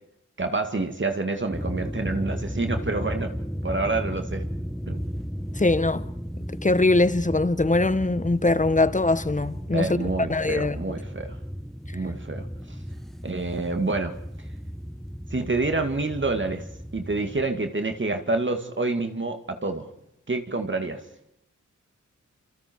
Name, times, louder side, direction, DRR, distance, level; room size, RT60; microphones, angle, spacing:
voice 1, 0.4-3.3 3.6-4.5 4.9-5.0 9.7-11.4 11.9-12.8 13.2-14.2 15.3-16.7 16.9-19.9 20.3-21.0, right 3 dB, 40° right, 2.5 m, -28 dB
sound 1, 1.5-17.5, equal, ahead, 1.4 m, -34 dB
voice 2, 5.6-6.0 6.6-10.8, left 2 dB, 25° left, 1.3 m, -22 dB
30.0 x 27.5 x 4.8 m
wide cardioid pair, 70°, 31 cm